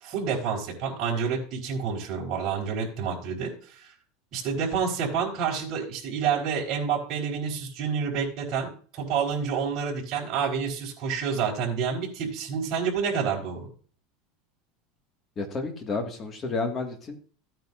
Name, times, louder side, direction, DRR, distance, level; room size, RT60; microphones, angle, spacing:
voice 1, 0.0-3.8 4.3-13.7, right 6 dB, 40° right, -1 dB, 4.0 m, -28 dB
voice 2, 15.4-17.2, left 3 dB, 25° left, 4 dB, 1.8 m, -31 dB
15.0 x 9.1 x 2.5 m, 0.42 s
supercardioid pair, 155°, 0 cm